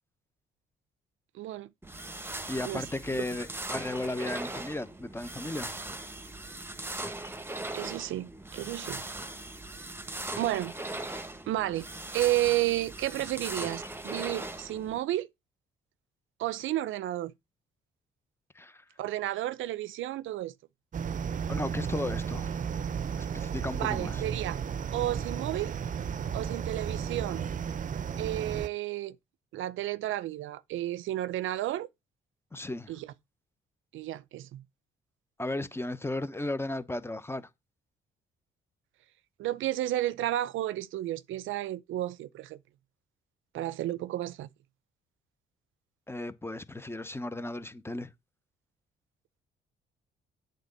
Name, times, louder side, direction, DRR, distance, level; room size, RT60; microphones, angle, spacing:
voice 1, 1.3-1.7 2.6-2.9 3.1-3.2 7.7-9.0 10.4-11.9 12.1-15.3 16.4-17.3 19.0-20.5 23.8-24.6 24.9-25.7 26.3-27.5 28.2-29.2 29.5-31.9 32.9-33.1 33.9-34.6 39.4-42.6 43.5-44.5, right 14 dB, 80° right, 0.6 m, -32 dB
sound 1, 1.8-15.0, right 2 dB, 10° right, 1.2 m, -39 dB
voice 2, 2.5-5.8 18.5-18.8 21.5-22.6 23.3-24.2 32.5-32.9 35.4-37.5 46.1-48.1, left 2 dB, 10° left, 0.9 m, -35 dB
sound 2, 20.9-28.7, right 7 dB, 40° right, 0.7 m, -34 dB
8.3 x 3.9 x 6.7 m
cardioid pair, 90°, 20 cm